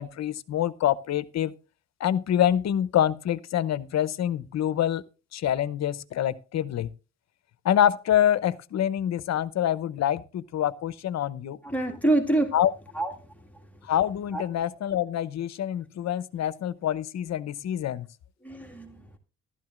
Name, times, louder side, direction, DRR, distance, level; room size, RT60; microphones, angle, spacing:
voice 1, 0.0-1.5 2.0-5.0 5.3-6.9 7.6-11.6 12.5-12.7 13.9-18.1, left 10 dB, 60° left, 0.8 m, -26 dB
voice 2, 11.6-12.5 12.9-13.1 14.3-14.4 18.4-19.2, right 2 dB, 5° left, 1.9 m, -26 dB
14.0 x 12.5 x 2.5 m
cardioid pair, 90°, 30 cm